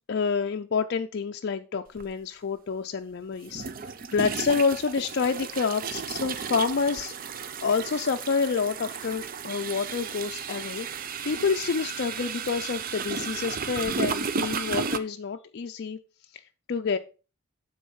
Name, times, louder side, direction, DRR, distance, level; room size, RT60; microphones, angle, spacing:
voice 1, 0.1-7.1 7.6-10.9 11.3-16.0 16.3-16.4 16.7-17.0, left 5 dB, 50° left, 5 dB, 0.4 m, -28 dB
sound 1, 2.0-2.1 3.5-15.0, right 5 dB, 40° right, 0.5 m, -33 dB
9.5 x 3.9 x 5.4 m, 0.34 s
head